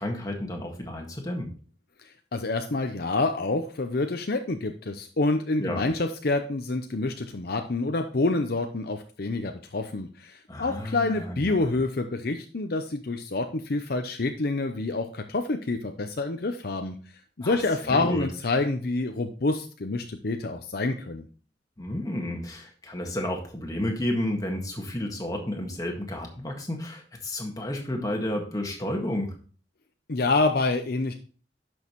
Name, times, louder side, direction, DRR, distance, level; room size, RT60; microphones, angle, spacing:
voice 1, 0.0-1.5 5.6-5.8 10.5-11.5 17.4-18.3 21.8-29.3, left 1 dB, 20° left, 2 dB, 1.7 m, -31 dB
voice 2, 2.0-17.0 17.4-21.3 30.1-31.1, left 3 dB, 55° left, 6 dB, 0.7 m, -27 dB
11.0 x 6.3 x 3.1 m, 0.39 s
head